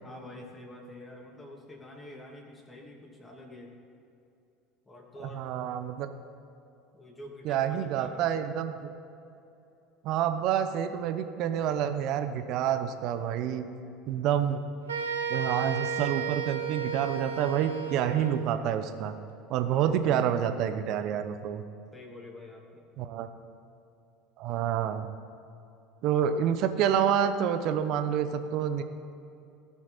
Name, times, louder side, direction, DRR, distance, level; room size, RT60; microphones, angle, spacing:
voice 1, 0.0-3.7 4.8-5.5 6.9-8.5 19.7-20.0 21.9-22.9, left 1 dB, 20° left, 0 dB, 2.6 m, -47 dB
voice 2, 5.3-6.1 7.4-8.7 10.0-13.7 14.1-14.6 15.3-19.1 19.5-21.6 23.0-23.3 24.4-25.1 26.0-28.8, right 9 dB, 60° right, 9 dB, 0.8 m, -28 dB
sound 1, 14.9-18.5, right 6 dB, 85° right, 0.9 m, -33 dB
17.5 x 6.3 x 4.2 m, 2.7 s
hypercardioid pair, 75°, 0 cm